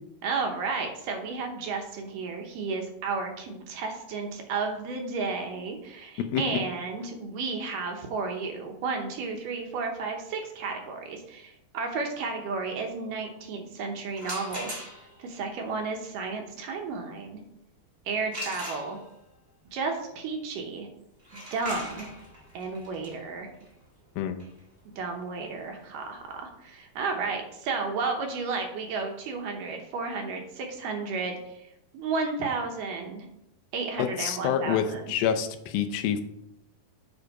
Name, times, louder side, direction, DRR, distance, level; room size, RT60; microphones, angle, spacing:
voice 1, 0.2-14.8 15.2-17.4 18.1-19.0 19.7-20.9 21.3-22.1 22.5-23.5 25.0-31.7 31.9-33.3 33.7-35.1, right 4 dB, 70° right, 3 dB, 2.4 m, -32 dB
sound 1, 14.1-15.3 18.3-19.3 21.2-26.9, equal, 20° right, 1.0 m, -41 dB
voice 2, 34.0-36.2, left 9 dB, 85° left, 7 dB, 2.5 m, -27 dB
8.1 x 5.0 x 4.7 m, 0.82 s
omnidirectional pair, 4.3 m